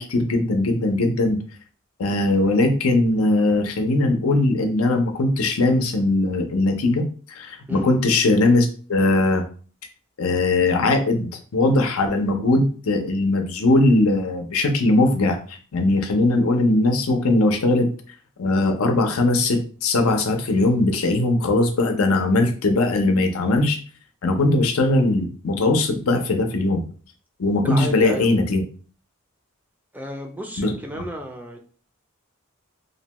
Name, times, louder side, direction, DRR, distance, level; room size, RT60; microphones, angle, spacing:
voice 1, 0.0-1.4 2.0-9.4 10.2-17.9 18.4-23.8 24.2-26.8 27.4-28.6 30.6-30.7, left 2 dB, 85° left, 5 dB, 0.6 m, -20 dB
voice 2, 27.6-28.3 29.9-31.6, equal, 10° right, 2 dB, 0.3 m, -32 dB
2.6 x 2.1 x 2.9 m, 0.41 s
head